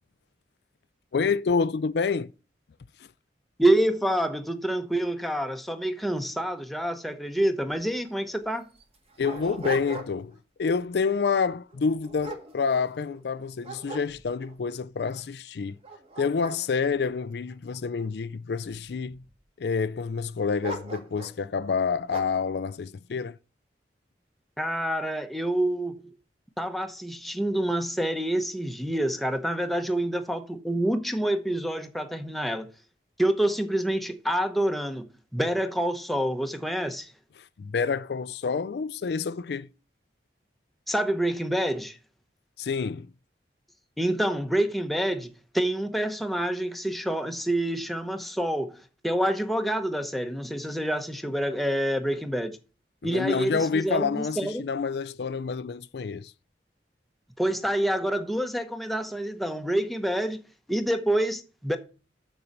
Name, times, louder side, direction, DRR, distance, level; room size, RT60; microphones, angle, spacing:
voice 1, 1.1-2.3 9.2-15.8 16.2-19.2 19.6-23.4 37.4-39.7 42.6-43.1 53.0-56.3, left 5 dB, 65° left, 0.4 m, -28 dB
voice 2, 3.6-8.6 24.6-26.1 26.6-32.7 33.2-35.1 35.3-37.1 40.9-42.0 44.0-52.6 53.0-54.7 57.4-60.4 60.7-61.8, right 1 dB, ahead, 0.9 m, -27 dB
Dog, 7.7-7.8 8.1-8.2 8.8-10.4 10.8-11.1 11.7-13.2 13.6-14.6 15.1-15.2 15.7-18.0 18.7-19.3 20.6-21.4 22.1-22.5, right 2 dB, 35° right, 1.8 m, -39 dB
7.1 x 6.9 x 6.5 m
head